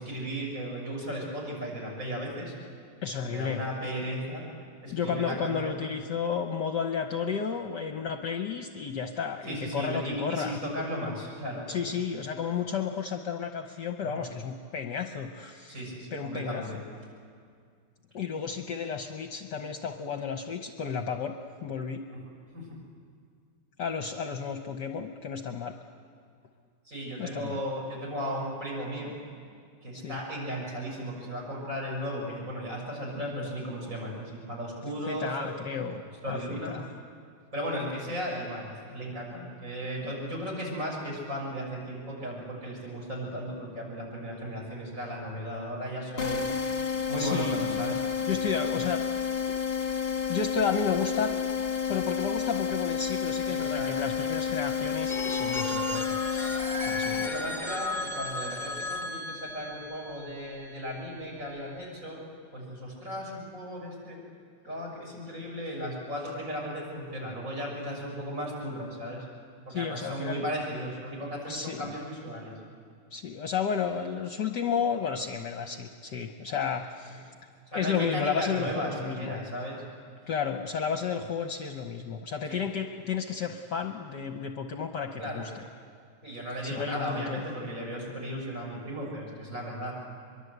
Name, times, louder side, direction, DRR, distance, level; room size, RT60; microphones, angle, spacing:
voice 1, 0.0-2.5 3.2-4.5 4.8-5.9 9.4-11.8 14.0-14.2 15.7-16.8 22.1-22.2 22.5-22.7 26.8-29.2 29.8-35.5 36.2-36.8 37.5-46.5 46.8-48.0 53.4-54.1 57.0-62.2 62.5-64.2 64.6-69.2 69.7-72.5 77.7-79.8 82.5-82.6 85.2-85.5 86.2-89.9, equal, 35° right, -3 dB, 6.4 m, -36 dB
voice 2, 3.0-3.6 4.9-10.6 11.7-15.8 16.1-16.8 18.1-21.4 21.6-22.0 23.8-25.7 27.2-27.6 29.9-30.2 35.1-36.8 47.2-47.8 48.3-49.0 49.8-50.0 50.3-51.4 51.9-56.6 56.8-57.3 69.7-70.5 71.5-71.9 73.1-77.3 77.7-79.4 80.3-85.6 86.6-87.4, left 6 dB, 60° left, 5 dB, 1.4 m, -32 dB
sound 1, 46.2-57.9, left 7 dB, 30° left, 1.7 m, -30 dB
Telephone, 55.1-60.9, left 1 dB, ahead, 1.1 m, -35 dB
23.5 x 23.0 x 8.1 m, 2.2 s
omnidirectional pair, 2.4 m